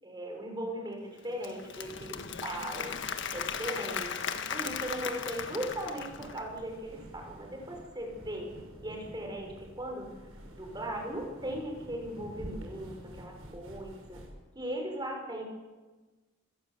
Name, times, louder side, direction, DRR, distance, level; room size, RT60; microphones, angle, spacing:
voice 1, 0.0-8.5 8.8-10.1 10.5-14.2 14.5-15.4, right 1 dB, 20° right, 1 dB, 5.8 m, -38 dB
Applause / Crowd, 1.2-6.6, left 7 dB, 60° left, 1.6 m, -37 dB
sound 1, 1.7-14.3, equal, 80° right, 7.0 m, -49 dB
27.0 x 15.5 x 8.2 m, 1.3 s
head